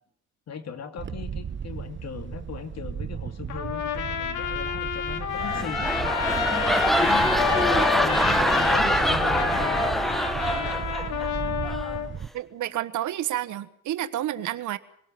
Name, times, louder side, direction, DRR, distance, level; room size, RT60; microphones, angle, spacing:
voice 1, 0.5-7.5 7.9-9.9 10.5-10.8 11.6-11.9, left 6 dB, 60° left, 8 dB, 2.6 m, -38 dB
Wind, 1.0-12.3, right 7 dB, 40° right, 1.0 m, -35 dB
Trumpet, 3.5-12.1, left 8 dB, 80° left, 2.3 m, -29 dB
sound 1, 5.3-11.3 11.6-12.0, equal, ahead, 1.2 m, -24 dB
voice 2, 12.3-14.8, right 13 dB, 80° right, 14 dB, 1.2 m, -30 dB
24.0 x 18.0 x 7.5 m, 0.69 s
cardioid pair, 90°, 30 cm